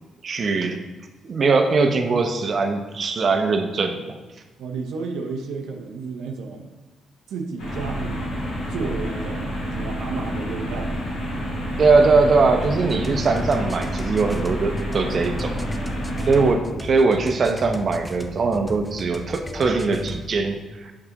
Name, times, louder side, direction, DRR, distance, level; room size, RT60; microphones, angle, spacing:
voice 1, 0.2-0.8 1.2-4.2 11.8-15.6 16.3-20.9, right 4 dB, 45° right, 5 dB, 0.7 m, -21 dB
voice 2, 4.6-6.7 7.3-8.4 8.7-10.9, right 4 dB, 85° right, 1 dB, 0.6 m, -32 dB
sound 1, 7.6-16.5, equal, 85° left, 2.0 m, -28 dB
sound 2, 12.6-20.3, left 1 dB, 5° left, 0.5 m, -35 dB
6.8 x 4.7 x 2.9 m, 1.2 s
cardioid pair, 90°, 0 cm